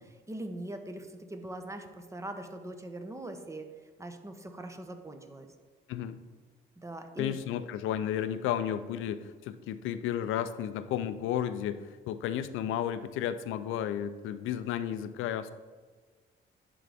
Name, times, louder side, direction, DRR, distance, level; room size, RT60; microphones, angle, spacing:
voice 1, 0.0-3.7 4.0-5.5 6.8-7.4, right 1 dB, 15° right, 6 dB, 0.8 m, -41 dB
voice 2, 5.9-6.2 7.2-15.5, left 10 dB, 85° left, 12 dB, 0.4 m, -33 dB
11.0 x 3.9 x 3.5 m, 1.5 s
cardioid pair, 90°, 20 cm